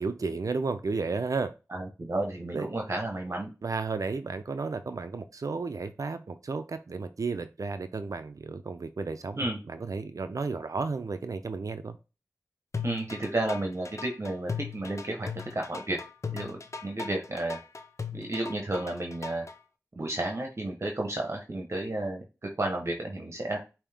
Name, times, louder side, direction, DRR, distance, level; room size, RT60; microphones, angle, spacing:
voice 1, 0.0-1.5 2.5-2.7 3.6-11.9, right 4 dB, 70° right, 0.5 m, -33 dB
voice 2, 1.7-3.5 9.4-9.6 12.8-15.3 15.5-16.0 16.3-17.6 18.1-19.4 19.9-22.2 22.6-23.6, right 1 dB, 50° right, 1.0 m, -32 dB
sound 1, 12.7-19.5, left 5 dB, 55° left, 0.5 m, -38 dB
5.3 x 2.8 x 3.4 m
cardioid pair, 40°, 6 cm